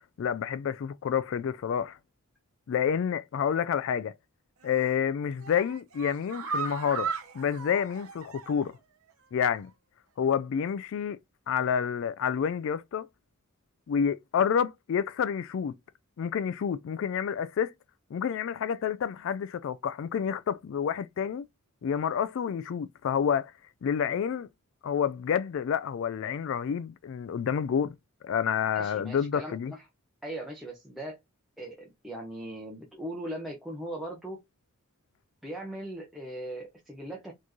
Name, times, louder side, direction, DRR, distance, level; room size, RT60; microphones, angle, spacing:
voice 1, 0.2-2.0 2.7-4.1 4.6-8.8 9.3-9.7 10.2-11.2 11.5-13.1 13.9-15.7 16.2-17.7 18.1-21.4 21.8-23.5 23.8-24.5 24.8-27.9 28.2-29.7, left 7 dB, 60° left, 0.3 m, -29 dB
sound 1, 4.6-5.0 5.4-8.8 9.1-9.2 9.6-9.7, right 5 dB, 85° right, 0.8 m, -37 dB
voice 2, 28.7-29.8 30.2-31.2 31.6-34.4 35.4-37.3, right 1 dB, ahead, 0.8 m, -39 dB
4.3 x 3.1 x 2.7 m
head